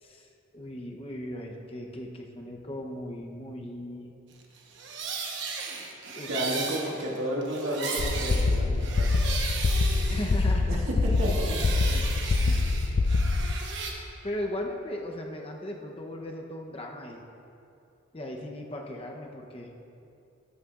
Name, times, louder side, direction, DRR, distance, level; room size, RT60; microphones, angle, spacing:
voice 1, 0.0-4.1 6.2-6.3 10.1-10.8 11.9-12.1 12.4-12.6 14.2-17.2 18.1-19.7, left 1 dB, 25° left, 1 dB, 0.8 m, -37 dB
sound 1, 4.6-10.8 11.1-13.9, right 4 dB, 60° right, 1.0 m, -36 dB
voice 2, 6.3-9.2 10.7-11.6, equal, 75° right, -3 dB, 1.8 m, -32 dB
sound 2, 8.0-13.6, left 3 dB, 45° left, 0.4 m, -25 dB
13.5 x 9.6 x 2.4 m, 2.6 s
head